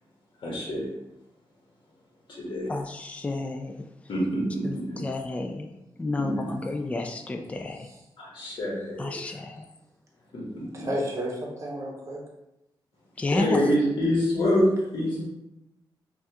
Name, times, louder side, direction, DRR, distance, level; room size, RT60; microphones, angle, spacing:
voice 1, 0.4-0.9 2.4-2.7 4.1-5.0 6.2-6.6 8.2-9.2 10.3-10.9 13.3-15.2, equal, 65° left, -4 dB, 1.4 m, -26 dB
voice 2, 2.7-3.9 4.6-5.7 6.0-7.8 9.0-9.6 13.2-13.6, left 2 dB, 15° left, 4 dB, 0.3 m, -31 dB
voice 3, 10.6-12.2, equal, 35° right, 0 dB, 0.8 m, -32 dB
5.4 x 2.4 x 2.9 m, 0.88 s
wide cardioid pair, 125°, 9 cm